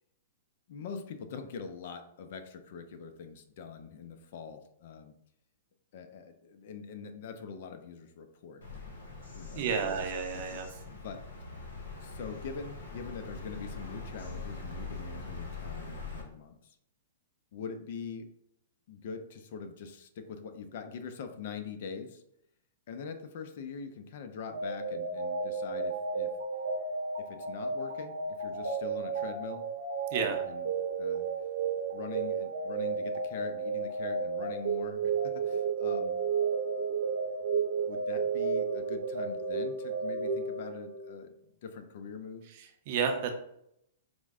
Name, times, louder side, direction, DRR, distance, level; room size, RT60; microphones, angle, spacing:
voice 1, 0.7-5.1 5.9-10.6 10.9-11.2 12.0-16.8 17.5-18.3 18.9-22.2 22.9-26.4 27.2-29.7 30.2-30.7 31.0-31.3 31.9-36.2 37.9-42.5, left 6 dB, 60° left, 8 dB, 0.4 m, -43 dB
Bird vocalization bird call bird song, 8.6-16.2, left 3 dB, 85° left, 0.9 m, -42 dB
voice 2, 9.5-10.7 30.1-30.4 42.9-43.3, right 6 dB, 50° right, 4 dB, 0.5 m, -30 dB
sound 1, 24.5-41.1, right 5 dB, 80° right, 0.8 m, -33 dB
4.5 x 2.1 x 2.4 m, 0.76 s
hypercardioid pair, 120°, 0 cm